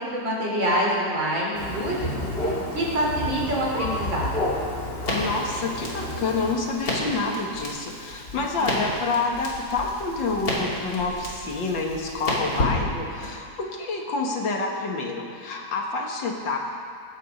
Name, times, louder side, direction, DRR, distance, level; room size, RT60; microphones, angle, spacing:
voice 1, 0.0-2.1 2.4-4.3 8.6-8.8, equal, 75° right, -4 dB, 4.0 m, -26 dB
Thunder, 1.5-6.5, left 1 dB, 30° left, 2.0 m, -30 dB
Crackle, 5.0-13.3, left 1 dB, 50° left, 3.2 m, -32 dB
voice 2, 5.1-16.6, left 3 dB, 75° left, 1 dB, 2.2 m, -28 dB
21.5 x 9.4 x 5.3 m, 2.2 s
omnidirectional pair, 2.1 m